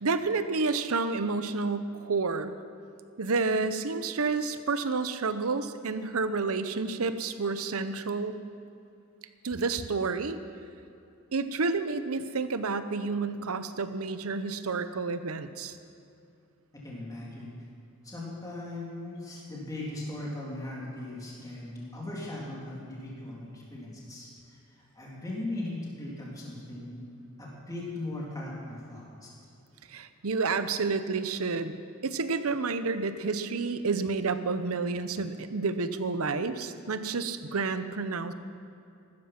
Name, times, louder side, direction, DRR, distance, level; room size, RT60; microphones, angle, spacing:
voice 1, 0.0-2.5 3.2-8.3 9.4-10.4 11.3-15.7 29.9-31.7 32.0-38.3, right 4 dB, 80° right, 11 dB, 0.8 m, -30 dB
voice 2, 16.8-17.5 18.0-24.3 24.9-27.0 27.4-29.3, left 1 dB, 15° left, -5 dB, 3.2 m, -38 dB
15.5 x 13.0 x 6.0 m, 2.7 s
head